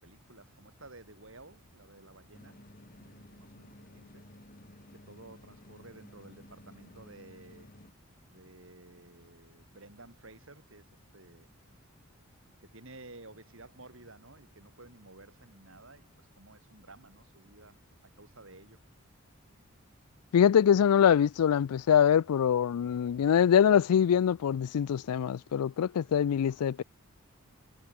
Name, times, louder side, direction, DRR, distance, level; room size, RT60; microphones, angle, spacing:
voice 1, 0.0-2.6 2.9-4.2 4.9-7.7 8.2-11.5 12.6-17.8 18.2-18.8, right 2 dB, 60° right, 4.0 m, -53 dB
sound 1, 2.3-7.9, left 1 dB, 40° left, 2.6 m, -54 dB
voice 2, 20.3-26.8, left 8 dB, 85° left, 0.4 m, -24 dB
head